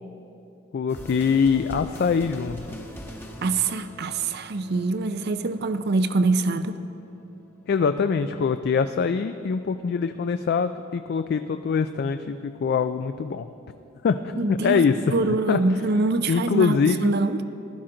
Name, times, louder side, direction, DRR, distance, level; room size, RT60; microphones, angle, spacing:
voice 1, 0.7-2.8 7.7-13.5 14.0-15.6 16.3-17.1, left 5 dB, 55° left, 9 dB, 0.3 m, -24 dB
sound 1, 0.9-8.6, equal, 10° left, 1.0 m, -44 dB
voice 2, 3.4-6.8 14.4-14.8 15.1-17.4, right 3 dB, 55° right, 11 dB, 0.5 m, -24 dB
15.5 x 12.5 x 3.8 m, 2.7 s
head